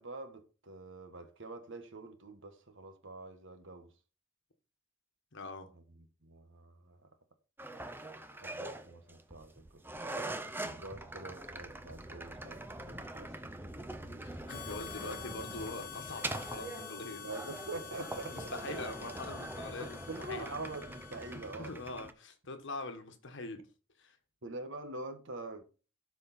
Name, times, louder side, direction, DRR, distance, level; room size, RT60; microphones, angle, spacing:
voice 1, 0.0-3.9 5.7-7.1 8.3-9.8 10.6-13.5 14.8-15.2 17.2-18.9 19.8-21.8 24.4-25.6, right 2 dB, 65° right, 1.4 m, -45 dB
voice 2, 5.3-5.7 14.0-17.3 18.3-20.0 20.3-20.6 21.6-23.7 24.0-24.2, left 2 dB, 60° left, 1.5 m, -43 dB
sound 1, 7.6-22.1, right 2 dB, 10° right, 0.7 m, -43 dB
Harmonica, 14.5-21.8, left 10 dB, 40° left, 1.0 m, -48 dB
12.0 x 5.0 x 4.2 m
head